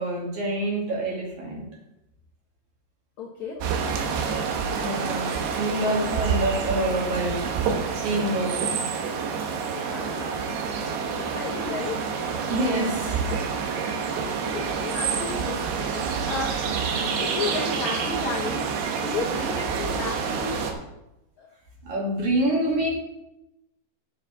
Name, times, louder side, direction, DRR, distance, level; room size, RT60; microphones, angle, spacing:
voice 1, 0.0-1.6 4.7-7.4 8.0-8.9 12.5-13.3 16.9-17.1 21.8-22.9, right 1 dB, 50° right, -3 dB, 3.4 m, -26 dB
voice 2, 3.2-4.0 9.7-10.5 11.2-12.4 14.4-15.8 16.2-16.6 17.2-18.7 19.0-20.6 21.4-21.5, left 4 dB, 85° left, -1 dB, 1.6 m, -33 dB
sound 1, 3.6-20.7, right 6 dB, 85° right, 3.3 m, -28 dB
7.5 x 7.3 x 6.8 m, 0.90 s
omnidirectional pair, 5.0 m